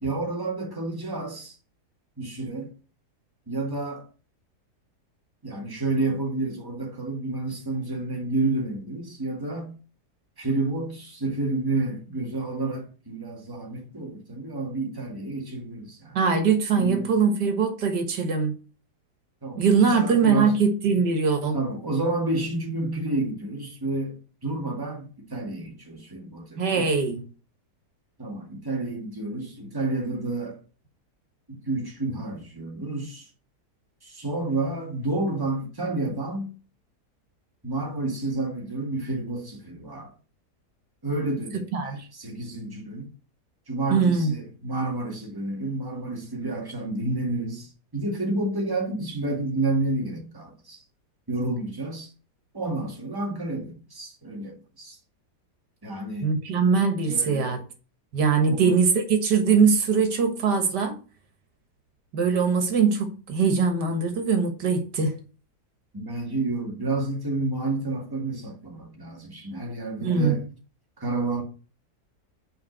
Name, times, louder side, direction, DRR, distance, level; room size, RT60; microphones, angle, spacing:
voice 1, 0.0-1.6 2.2-2.7 3.5-4.1 5.4-9.8 10.4-16.2 16.8-17.1 19.4-20.6 21.5-26.9 28.2-30.6 31.5-33.3 34.0-36.5 37.6-40.1 41.0-43.1 43.7-50.8 51.3-52.1 52.5-55.0 55.8-56.3 57.1-57.6 58.4-58.8 65.9-70.4 71.0-71.4, right 2 dB, 15° right, 1.9 m, -30 dB
voice 2, 16.2-18.5 19.6-21.6 26.6-27.2 41.7-42.0 43.9-44.3 56.2-57.6 58.1-58.9 59.2-61.0 62.1-65.2 70.0-70.4, right 5 dB, 80° right, 2.0 m, -22 dB
5.7 x 5.1 x 6.5 m
omnidirectional pair, 1.8 m